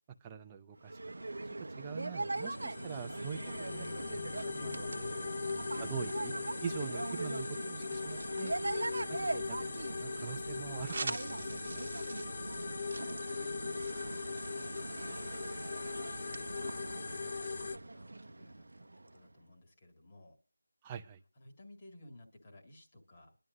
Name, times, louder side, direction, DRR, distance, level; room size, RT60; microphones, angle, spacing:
voice 1, 0.2-1.0 1.8-3.4 3.7-3.9 4.1-4.2 4.6-6.3 6.6-11.9 20.8-21.2, right 7 dB, 10° right, 5 dB, 0.6 m, -44 dB
sound 1, 0.8-19.3, right 2 dB, 70° right, 0.7 m, -41 dB
sound 2, 2.4-17.8, left 4 dB, 35° left, 0.5 m, -40 dB
sound 3, 10.8-17.6, right 3 dB, 40° right, 1.4 m, -47 dB
voice 2, 11.7-15.3 16.0-20.4 21.3-23.4, left 1 dB, 20° left, 1 dB, 1.9 m, -57 dB
22.5 x 11.0 x 2.5 m, 0.30 s
figure-of-eight pair, 175°, 0 cm